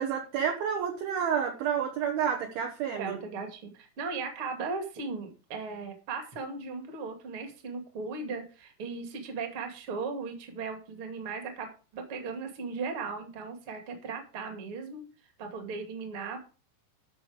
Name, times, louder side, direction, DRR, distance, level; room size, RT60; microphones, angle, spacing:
voice 1, 0.0-3.2, right 8 dB, 70° right, 3 dB, 2.4 m, -30 dB
voice 2, 2.9-15.0 15.4-16.4, right 4 dB, 40° right, 4 dB, 1.9 m, -37 dB
13.5 x 6.2 x 5.0 m, 0.35 s
omnidirectional pair, 6.0 m